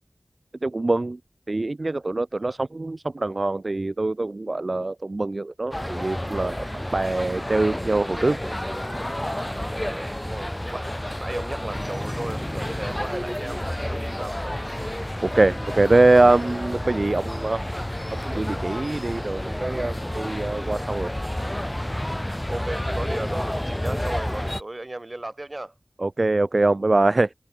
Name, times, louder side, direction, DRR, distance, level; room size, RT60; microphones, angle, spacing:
voice 1, 0.6-1.2 1.5-8.4 15.2-17.6 18.1-21.1 26.0-27.3, right 2 dB, 65° right, 0.3 m, -23 dB
sound 1, 5.7-24.6, left 1 dB, 20° left, 0.9 m, -30 dB
voice 2, 9.8-10.9 11.2-14.8 22.5-25.7, right 2 dB, 45° right, 1.1 m, -35 dB
wide cardioid pair, 40°, 0 cm